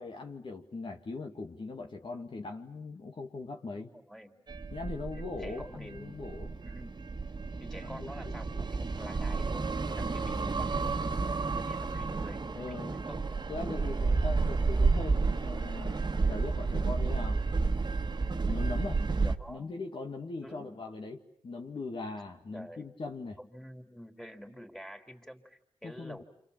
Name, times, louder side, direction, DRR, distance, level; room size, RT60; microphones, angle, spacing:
voice 1, 0.0-3.9 4.7-6.6 7.8-8.6 12.6-12.9 13.5-16.0 16.3-17.4 18.5-19.0 19.5-21.2 21.4-23.4 25.8-26.2, left 3 dB, 55° left, 2 dB, 2.0 m, -40 dB
voice 2, 3.7-4.4 5.1-6.4 6.6-7.0 7.6-13.5 19.2-19.7 20.4-20.8 22.5-22.9 23.4-26.2, equal, 5° left, 5 dB, 3.9 m, -49 dB
sound 1, 4.5-19.3, right 4 dB, 45° right, 1.5 m, -31 dB
28.5 x 26.5 x 7.5 m, 0.78 s
cardioid pair, 45°, 10 cm